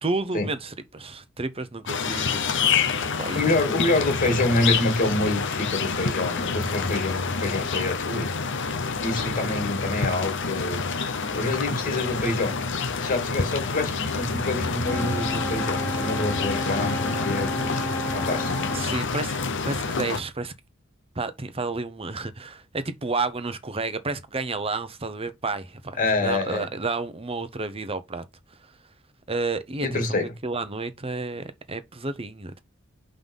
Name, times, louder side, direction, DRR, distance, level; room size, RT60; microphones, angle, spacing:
voice 1, 0.0-2.4 3.0-3.5 18.7-20.5 21.1-28.7 29.3-30.0 30.4-32.6, right 3 dB, 30° right, 0.9 m, -31 dB
sound 1, 1.9-20.2, left 5 dB, 65° left, 0.8 m, -27 dB
voice 2, 3.3-8.3 9.0-12.5 13.0-18.5 26.0-26.7 29.8-30.3, left 2 dB, 45° left, 2.4 m, -27 dB
sound 2, 14.8-18.9, equal, 10° left, 1.1 m, -32 dB
5.5 x 3.9 x 5.5 m
head